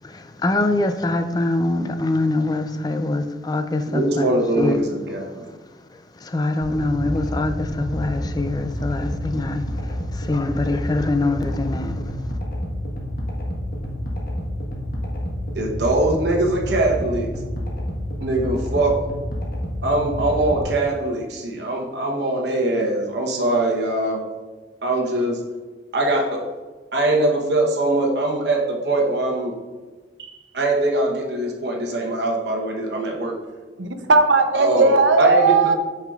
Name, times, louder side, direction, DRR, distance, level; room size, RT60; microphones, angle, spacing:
voice 1, 0.0-4.3 4.6-4.7 6.2-12.0, left 2 dB, 20° left, 8 dB, 0.4 m, -24 dB
voice 2, 3.9-5.5 15.5-17.3 18.2-18.9 19.8-24.2 24.8-25.4 25.9-26.4 26.9-29.5 30.2-33.4 34.5-35.4, right 2 dB, 60° right, 0 dB, 1.0 m, -22 dB
sound 1, 6.6-20.6, equal, 50° left, 1.3 m, -29 dB
voice 3, 33.8-35.7, right 3 dB, 85° right, 6 dB, 0.7 m, -17 dB
8.9 x 5.7 x 2.4 m, 1.3 s
head